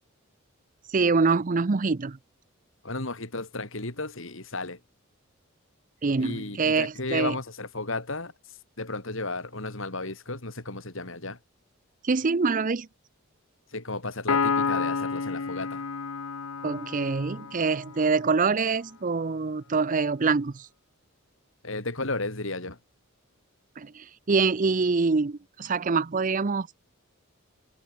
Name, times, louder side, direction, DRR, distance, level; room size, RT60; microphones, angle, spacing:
voice 1, 0.9-2.2 6.0-7.3 12.0-12.9 16.6-20.7 23.8-26.8, right 4 dB, 40° right, 0.5 m, -25 dB
voice 2, 2.8-4.8 6.2-11.4 13.7-15.9 21.6-22.8, left 2 dB, 65° left, 3.4 m, -34 dB
Piano, 14.3-17.9, left 5 dB, 80° left, 0.9 m, -29 dB
head